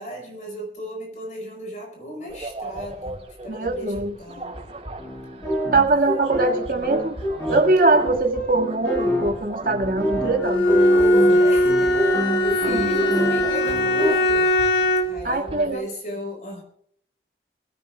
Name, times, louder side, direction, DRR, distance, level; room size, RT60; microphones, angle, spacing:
voice 1, 0.0-4.6 11.0-14.5 15.0-16.6, equal, 45° left, 2 dB, 4.4 m, -37 dB
sound 1, 2.3-15.7, right 2 dB, 35° right, 3.9 m, -39 dB
sound 2, 2.8-2.9 5.0-14.1, equal, 20° left, 7.9 m, -27 dB
voice 2, 3.5-4.2 4.4-4.6 5.6-7.1 7.5-10.7 12.7-12.9 15.2-15.9, right 3 dB, 55° right, 2 dB, 2.1 m, -22 dB
Bowed string instrument, 10.4-15.2, left 1 dB, 85° left, 1.3 m, -19 dB
24.5 x 16.5 x 2.4 m, 0.65 s
head